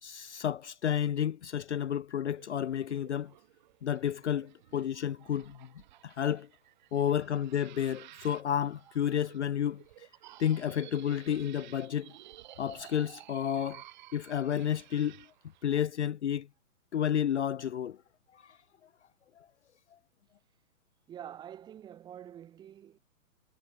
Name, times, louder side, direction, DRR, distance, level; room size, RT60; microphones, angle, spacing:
voice 1, 0.0-3.3 3.8-5.7 6.0-6.5 6.9-10.1 10.4-12.1 12.6-13.8 14.1-15.2 15.6-16.5 16.9-18.0 18.3-18.6 19.4-19.5, left 9 dB, 50° left, 0.8 m, -31 dB
sound 1, 2.4-15.9, right 14 dB, 30° right, 4.8 m, -54 dB
voice 2, 21.1-23.0, right 10 dB, 10° right, 3.5 m, -46 dB
hypercardioid pair, 175°, 44 cm